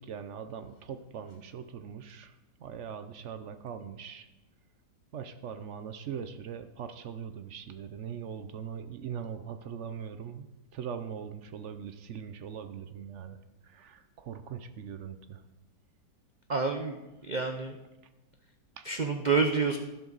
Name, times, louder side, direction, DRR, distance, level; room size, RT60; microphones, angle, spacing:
voice 1, 0.0-2.3 2.6-4.3 5.1-10.5 10.7-13.4 13.6-15.4 18.8-18.9, right 7 dB, 65° right, 10 dB, 0.7 m, -41 dB
voice 2, 16.5-17.0 17.2-17.8 18.8-19.8, right 4 dB, 90° right, 5 dB, 0.4 m, -28 dB
12.0 x 11.5 x 4.0 m, 1.0 s
omnidirectional pair, 1.9 m